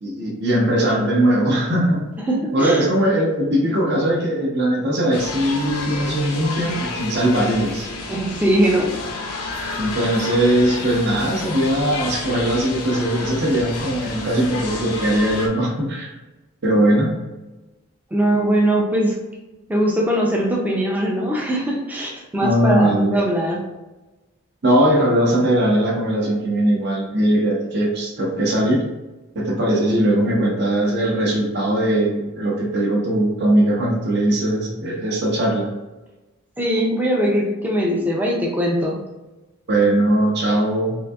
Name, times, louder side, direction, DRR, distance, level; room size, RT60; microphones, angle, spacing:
voice 1, 0.0-2.0 2.5-7.9 9.8-16.1 16.6-17.1 22.4-23.2 24.6-28.8 29.3-35.7 39.7-41.0, right 1 dB, 50° right, -3 dB, 0.7 m, -20 dB
voice 2, 2.3-2.9 8.1-8.9 18.1-19.2 19.7-23.7 36.6-39.0, right 1 dB, 5° right, -1 dB, 0.4 m, -21 dB
sound 1, 5.1-15.5, left 3 dB, 85° left, 0.6 m, -30 dB
3.7 x 2.6 x 2.3 m, 1.1 s
head